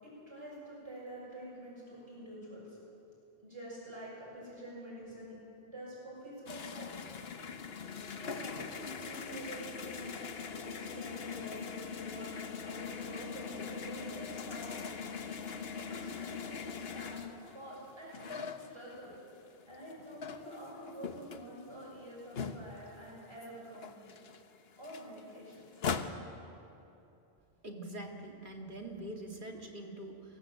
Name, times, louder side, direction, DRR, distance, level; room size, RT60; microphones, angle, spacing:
voice 1, 0.0-2.8 3.4-5.3 5.7-6.9 8.2-8.7 9.0-10.1 10.4-12.3 12.6-15.2 15.7-17.2 17.5-19.1 19.7-24.1 24.8-25.6, right 1 dB, 25° right, -6 dB, 6.8 m, -47 dB
sound 1, 6.5-19.3 19.7-23.1 23.4-23.5 23.7-26.1, left 6 dB, 70° left, 1.2 m, -41 dB
voice 2, 27.6-30.4, right 1 dB, 50° right, 0 dB, 2.5 m, -44 dB
24.0 x 17.5 x 7.6 m, 2.8 s
omnidirectional pair, 1.1 m